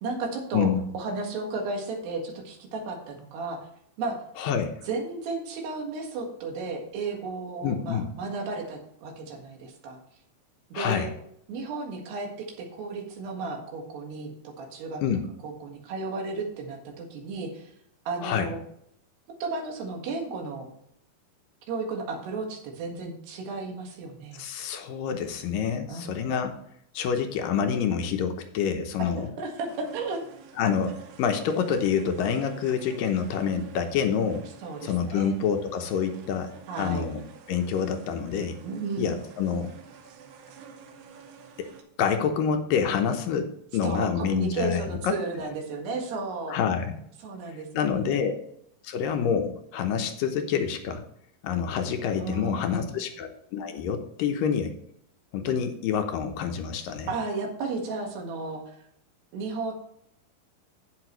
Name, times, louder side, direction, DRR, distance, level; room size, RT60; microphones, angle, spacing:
voice 1, 0.0-3.7 4.0-4.2 4.9-10.0 10.7-11.1 11.5-12.3 12.6-15.0 15.4-17.7 18.1-18.6 19.4-20.7 21.7-24.4 25.9-26.2 29.0-30.2 34.6-35.3 36.7-37.1 38.6-39.2 43.8-46.6 47.2-48.2 52.1-53.0 57.1-58.8 59.3-59.7, right 3 dB, 85° right, 1 dB, 3.9 m, -34 dB
voice 2, 4.4-4.8 7.6-8.1 10.7-11.1 15.0-15.2 18.2-18.5 24.3-26.5 26.9-29.3 30.6-34.4 34.8-36.5 36.8-37.2 37.5-38.6 39.0-39.7 41.6-41.7 42.0-45.2 46.5-47.0 47.7-48.4 48.8-51.0 51.4-54.7 55.3-57.1, left 7 dB, 75° left, 6 dB, 2.2 m, -27 dB
sound 1, 29.7-41.8, right 6 dB, 65° right, 2.6 m, -48 dB
16.0 x 5.7 x 3.1 m, 0.71 s
omnidirectional pair, 4.6 m